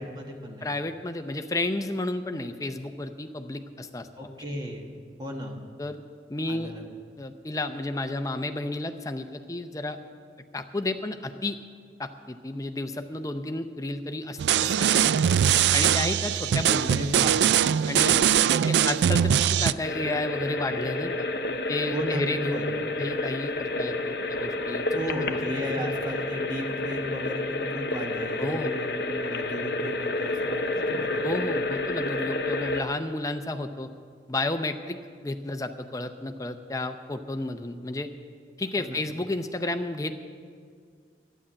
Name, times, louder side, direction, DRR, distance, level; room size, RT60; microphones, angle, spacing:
voice 1, 0.0-0.7 4.2-4.9 5.2-5.6 6.5-6.8 16.9-17.7 18.1-18.4 21.9-22.2 22.5-22.7 24.9-31.2 38.8-39.0, equal, 25° right, 1 dB, 1.5 m, -35 dB
voice 2, 0.6-4.1 5.8-6.0 6.3-6.7 7.2-10.0 10.5-11.6 12.0-15.1 15.7-17.0 17.9-18.2 18.7-21.3 21.7-24.9 25.3-25.4 28.4-28.8 31.2-33.9 34.3-35.0 35.2-38.1 38.6-40.1, left 2 dB, 20° left, 8 dB, 0.6 m, -32 dB
sound 1, 14.4-19.7, right 9 dB, 80° right, 0.3 m, -22 dB
sound 2, 19.8-32.8, left 2 dB, 65° left, 0.8 m, -30 dB
12.0 x 10.0 x 7.5 m, 2.1 s
head